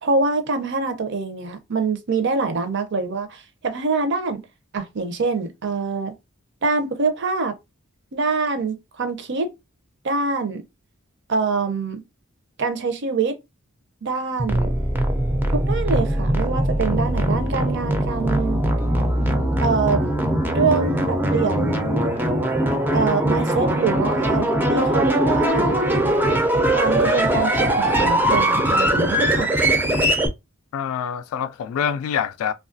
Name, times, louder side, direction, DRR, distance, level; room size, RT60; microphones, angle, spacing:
voice 1, 0.0-4.4 4.7-6.1 6.6-7.5 8.1-9.5 10.0-10.6 11.3-12.0 12.6-13.3 14.0-14.7 15.5-18.6 19.6-20.0 20.5-21.9 22.9-25.7 26.7-29.5, right 4 dB, 60° right, 0.6 m, -24 dB
sound 1, 14.4-30.3, right 1 dB, 10° right, 0.4 m, -21 dB
voice 2, 30.7-32.5, left 8 dB, 80° left, 0.3 m, -25 dB
3.0 x 2.3 x 2.5 m
head